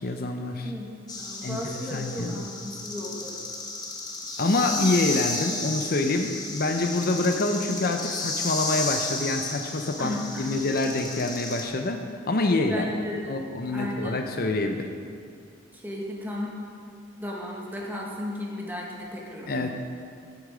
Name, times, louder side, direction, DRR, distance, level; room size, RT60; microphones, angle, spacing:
voice 1, 0.0-0.7 1.4-2.5 4.4-12.9 13.3-14.9 19.5-19.7, left 2 dB, 50° left, 5 dB, 0.7 m, -26 dB
voice 2, 0.6-3.4 10.0-10.6 12.7-13.5 13.7-14.2 15.7-16.6 17.2-19.7, left 1 dB, 10° right, -2 dB, 1.8 m, -35 dB
sound 1, 1.1-11.6, left 3 dB, 20° left, 1.2 m, -33 dB
14.5 x 8.1 x 5.1 m, 2.3 s
head